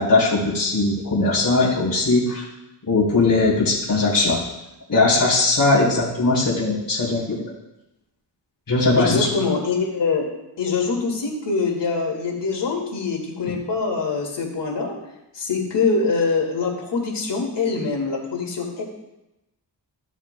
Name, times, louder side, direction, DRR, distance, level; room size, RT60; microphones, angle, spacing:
voice 1, 0.0-2.4 2.9-4.4 4.9-7.4 8.7-9.3, left 3 dB, 50° left, -7 dB, 3.2 m, -19 dB
voice 2, 9.0-10.3 10.6-15.0 15.3-18.8, left 4 dB, 70° left, 0 dB, 2.2 m, -24 dB
14.5 x 7.1 x 2.2 m, 0.94 s
wide cardioid pair, 90°, 44 cm